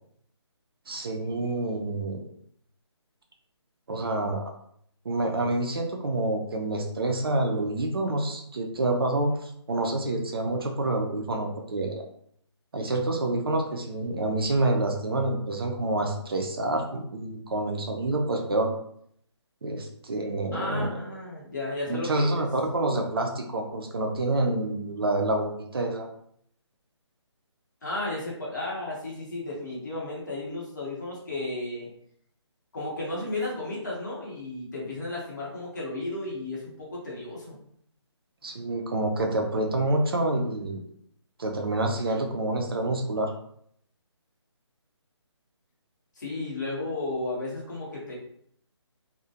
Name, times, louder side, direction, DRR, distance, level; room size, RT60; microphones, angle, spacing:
voice 1, 0.9-2.2 3.9-4.5 5.1-12.0 12.7-18.7 19.6-21.0 21.9-26.1 38.4-40.8 41.4-43.3, right 2 dB, 55° right, 3 dB, 0.4 m, -27 dB
voice 2, 20.5-22.3 27.8-31.9 32.7-37.6 46.2-48.2, left 2 dB, 40° left, -5 dB, 0.8 m, -33 dB
2.4 x 2.1 x 2.7 m, 0.68 s
hypercardioid pair, 170°, 15 cm